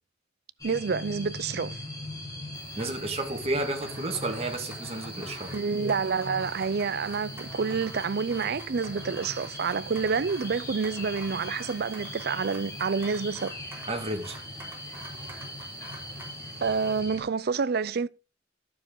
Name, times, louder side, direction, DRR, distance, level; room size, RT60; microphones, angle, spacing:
sound 1, 0.6-17.2, left 1 dB, 20° left, 4.0 m, -40 dB
voice 1, 0.6-1.8 5.5-13.5 16.6-18.1, right 5 dB, 55° right, 0.5 m, -28 dB
sound 2, 2.5-17.0, right 1 dB, 15° right, 3.5 m, -47 dB
voice 2, 2.8-5.5 13.9-14.4, right 2 dB, 35° right, 1.8 m, -31 dB
12.0 x 6.8 x 3.8 m
head